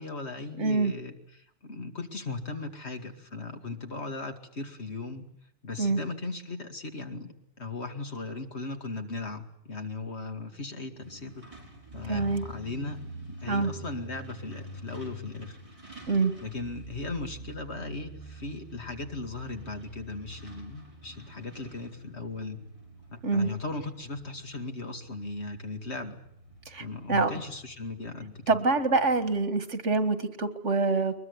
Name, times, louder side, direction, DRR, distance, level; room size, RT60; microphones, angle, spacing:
voice 1, 0.0-5.3 5.6-11.4 11.9-13.0 13.3-15.6 16.4-22.6 23.1-26.2 26.8-28.6, left 3 dB, 65° left, 6 dB, 2.6 m, -38 dB
voice 2, 0.6-0.9 5.8-6.0 12.1-12.5 13.5-13.7 16.1-16.3 23.2-23.5 26.7-27.3 28.5-31.1, right 3 dB, 85° right, 11 dB, 2.1 m, -25 dB
Truck, 11.0-29.4, equal, 25° right, 5.7 m, -47 dB
22.5 x 21.0 x 9.6 m, 0.73 s
omnidirectional pair, 1.2 m